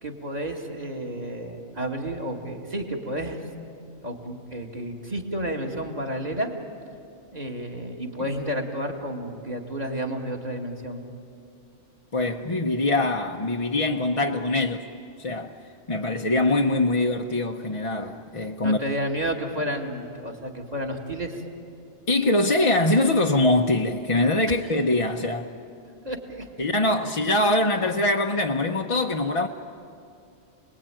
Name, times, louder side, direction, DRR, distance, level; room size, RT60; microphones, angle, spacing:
voice 1, 0.0-3.4 4.0-6.5 7.3-11.0 18.6-21.4 24.5-24.6 26.0-26.5, right 1 dB, 35° right, 2.3 m, -31 dB
voice 2, 12.1-14.8 15.2-15.6 15.9-18.8 22.1-25.5 26.6-29.5, left 2 dB, 30° left, 0.8 m, -23 dB
28.5 x 20.5 x 9.0 m
omnidirectional pair, 1.3 m